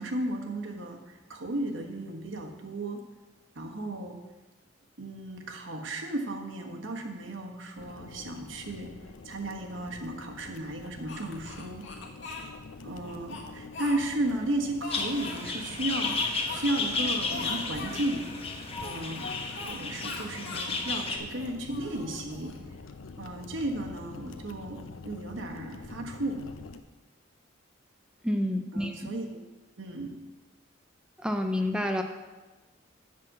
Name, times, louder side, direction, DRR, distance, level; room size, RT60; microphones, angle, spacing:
voice 1, 0.0-3.0 3.5-4.2 5.0-8.9 9.2-11.8 12.8-18.2 18.8-19.4 19.7-22.5 23.2-26.4 28.7-29.2 29.8-30.1, right 1 dB, 70° right, 2 dB, 1.4 m, -34 dB
sound 1, 7.8-26.8, left 4 dB, 85° left, 0.6 m, -46 dB
Speech, 11.1-12.5 13.0-14.3 14.8-15.4 16.0-16.6 16.9-17.0 17.3-18.1 18.8-19.7 20.0-20.7 21.2-22.6, left 4 dB, 65° left, 1.5 m, -41 dB
sound 2, 14.9-21.2, left 3 dB, 30° left, 1.0 m, -33 dB
voice 2, 28.2-29.1 31.2-32.0, left 1 dB, 5° right, 4 dB, 0.5 m, -29 dB
7.6 x 6.0 x 7.5 m, 1.2 s
head